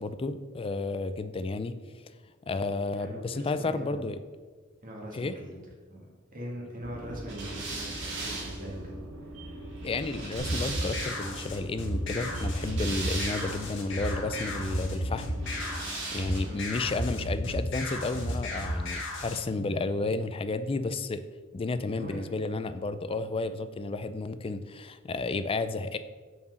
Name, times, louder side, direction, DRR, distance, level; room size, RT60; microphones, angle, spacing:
voice 1, 0.0-2.0 2.5-4.2 5.1-5.3 9.8-15.8 16.1-21.2 21.5-26.0, left 3 dB, 25° left, 12 dB, 0.4 m, -32 dB
voice 2, 2.9-4.1 4.8-5.6 5.9-6.1 6.3-9.7 16.4-16.6 21.9-22.3, equal, 45° right, -2 dB, 1.8 m, -42 dB
sound 1, 6.8-15.9, right 1 dB, 80° right, 0.9 m, -42 dB
sound 2, 7.3-11.4 12.3-13.7 15.4-16.6, right 2 dB, 60° right, 2.0 m, -38 dB
sound 3, 10.4-19.4, equal, 65° left, 1.5 m, -33 dB
5.6 x 4.7 x 6.2 m, 1.4 s
head